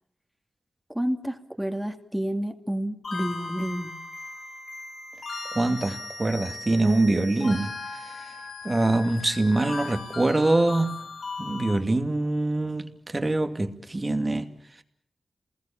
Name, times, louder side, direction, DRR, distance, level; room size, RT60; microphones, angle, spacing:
voice 1, 0.9-3.9, right 1 dB, 10° right, 2.6 m, -30 dB
sound 1, 3.0-11.8, left 3 dB, 70° left, 7.7 m, -38 dB
voice 2, 5.5-7.7 8.6-11.0 11.4-14.5, right 2 dB, 30° right, 2.5 m, -24 dB
28.0 x 21.0 x 7.4 m
cardioid pair, 50°, 0 cm